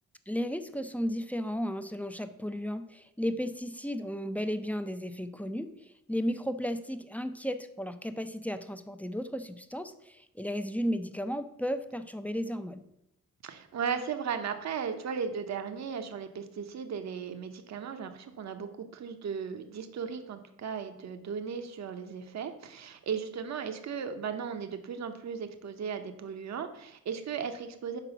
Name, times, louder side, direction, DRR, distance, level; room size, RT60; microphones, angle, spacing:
voice 1, 0.3-12.8, equal, 5° left, 9 dB, 0.4 m, -34 dB
voice 2, 13.4-28.0, right 6 dB, 60° right, 8 dB, 0.8 m, -36 dB
6.0 x 4.9 x 6.7 m, 0.81 s
wide cardioid pair, 130°, 32 cm